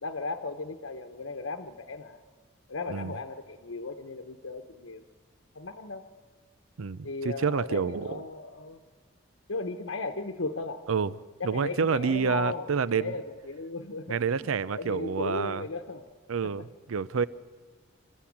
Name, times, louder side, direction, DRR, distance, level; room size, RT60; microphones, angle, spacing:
voice 1, 0.0-2.2 2.7-5.0 5.5-6.0 7.0-8.8 9.5-10.8 11.4-16.1 16.6-16.7, left 3 dB, 75° left, 7 dB, 1.0 m, -36 dB
voice 2, 6.8-8.2 10.9-11.1 11.4-13.1 14.1-15.6 16.3-17.3, right 5 dB, 85° right, 18 dB, 0.5 m, -28 dB
28.0 x 13.5 x 8.6 m, 1.5 s
head